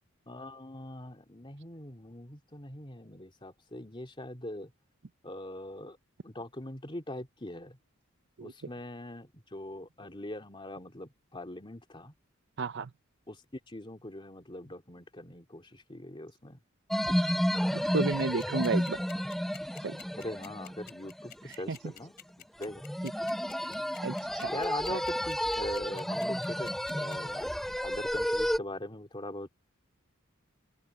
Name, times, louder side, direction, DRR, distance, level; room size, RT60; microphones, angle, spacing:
voice 1, 0.3-4.7 5.2-6.0 6.2-7.8 8.4-12.1 13.3-13.4 13.7-16.6 17.7-17.8 20.1-22.8 24.5-27.5 27.8-29.5, left 1 dB, 25° left, 2.6 m, -42 dB
voice 2, 12.6-12.9 17.7-19.0 19.8-19.9 21.7-21.8 24.0-24.5 24.9-25.0, right 4 dB, 55° right, 0.6 m, -32 dB
sound 1, 16.9-21.3 22.6-28.6, equal, ahead, 0.7 m, -31 dB
sound 2, 18.2-27.2, left 9 dB, 50° left, 2.9 m, -49 dB
open air
head